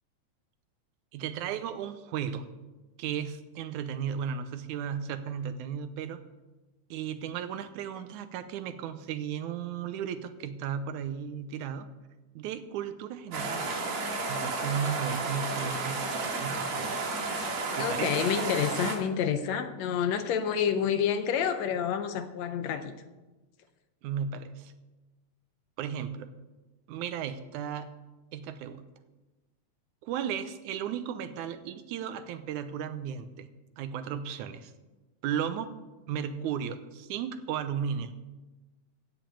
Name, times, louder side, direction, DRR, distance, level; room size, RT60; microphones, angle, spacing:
voice 1, 1.1-2.4 3.0-6.2 6.9-11.9 12.4-13.7 14.3-16.1 16.4-17.0 17.8-18.3 24.0-24.7 25.8-26.3 26.9-27.9 28.3-28.8 30.0-33.5 33.8-34.7 35.2-35.7 36.1-38.1, right 8 dB, 90° right, 11 dB, 2.2 m, -35 dB
sound 1, 13.3-19.0, right 3 dB, 65° right, 3.1 m, -32 dB
voice 2, 17.8-22.9, left 8 dB, 75° left, 9 dB, 1.9 m, -28 dB
14.5 x 5.3 x 8.7 m, 1.1 s
omnidirectional pair, 3.4 m